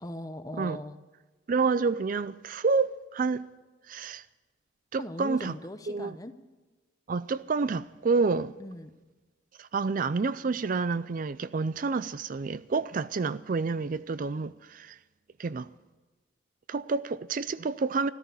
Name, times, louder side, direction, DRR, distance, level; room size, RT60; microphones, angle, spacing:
voice 1, 0.0-1.0 5.0-6.3 8.6-9.0, left 1 dB, 20° left, 0.8 m, -39 dB
voice 2, 1.5-3.5 3.9-4.2 4.9-5.5 5.9-6.2 7.1-8.5 9.6-15.0 15.4-15.7 16.7-18.1, right 4 dB, 45° right, 0.4 m, -29 dB
14.0 x 13.5 x 7.0 m
head